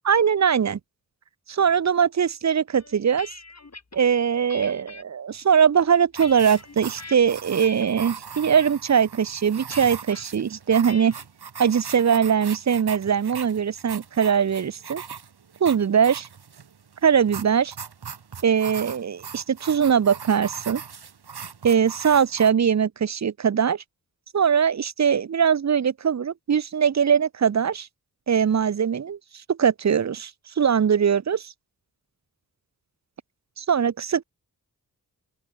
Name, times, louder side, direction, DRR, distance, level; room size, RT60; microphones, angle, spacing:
voice 1, 0.0-0.8 1.5-3.3 3.9-11.1 11.6-15.0 15.6-16.3 17.0-17.7 18.4-20.8 21.6-23.8 24.3-27.9 28.3-29.2 29.5-30.3 30.6-31.5 33.6-34.2, right 7 dB, 45° right, 0.6 m, -21 dB
sound 1, 2.8-4.0 4.5-5.0 5.6-7.2 7.6-8.0 8.3-8.7 9.7-10.2 10.9-11.3, left 3 dB, 45° left, 3.1 m, -43 dB
sound 2, 6.1-22.5, right 6 dB, 90° right, 3.7 m, -40 dB
open air
cardioid pair, 50°, 38 cm